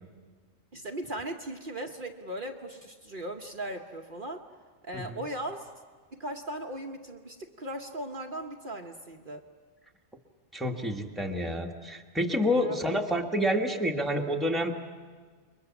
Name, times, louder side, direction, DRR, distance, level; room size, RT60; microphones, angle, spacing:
voice 1, 0.7-4.4 4.8-5.7 6.1-9.4 12.6-13.0, right 1 dB, 45° right, 3 dB, 1.2 m, -38 dB
voice 2, 10.5-14.7, equal, ahead, 1 dB, 1.5 m, -28 dB
29.0 x 22.5 x 7.1 m, 1.5 s
omnidirectional pair, 1.2 m